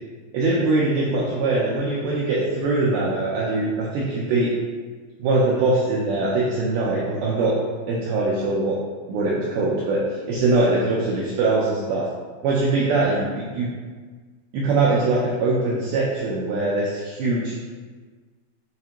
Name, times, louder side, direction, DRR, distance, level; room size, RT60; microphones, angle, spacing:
voice 1, 0.3-4.5 5.2-7.5 7.9-8.8 9.1-12.1 12.4-13.7 14.5-17.5, right 2 dB, 85° right, -5 dB, 2.2 m, -22 dB
6.7 x 2.4 x 2.9 m, 1.5 s
omnidirectional pair, 5.0 m